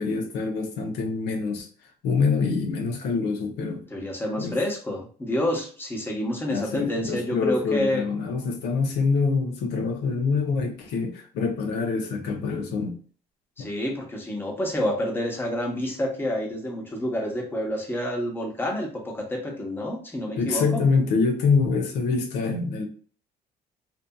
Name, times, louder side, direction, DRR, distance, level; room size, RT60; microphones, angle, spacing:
voice 1, 0.0-1.7 2.0-3.8 4.4-4.6 6.5-12.9 20.4-22.8, left 4 dB, 80° left, 3 dB, 0.7 m, -25 dB
voice 2, 3.9-8.0 13.6-20.9, left 1 dB, 15° left, 0 dB, 0.9 m, -28 dB
2.7 x 2.5 x 2.2 m, 0.43 s
cardioid pair, 110°, 17 cm